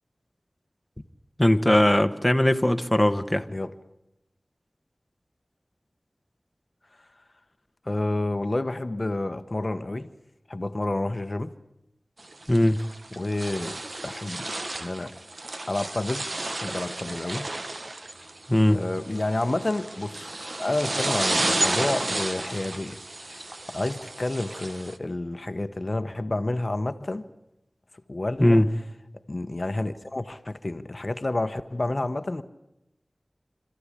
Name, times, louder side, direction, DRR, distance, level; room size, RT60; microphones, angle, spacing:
voice 1, 1.4-3.5 12.5-12.8 18.5-18.8 28.4-28.7, left 1 dB, 10° left, 1.2 m, -20 dB
voice 2, 7.8-10.1 10.5-11.5 13.1-14.5 14.7-15.1 15.7-16.3 16.6-17.5 18.7-20.3 20.6-27.3 28.1-28.7 29.3-32.4, left 2 dB, 45° left, 1.0 m, -29 dB
sound 1, 12.2-25.0, right 2 dB, 60° right, 1.4 m, -32 dB
26.0 x 14.5 x 9.9 m
wide cardioid pair, 60°, 0 cm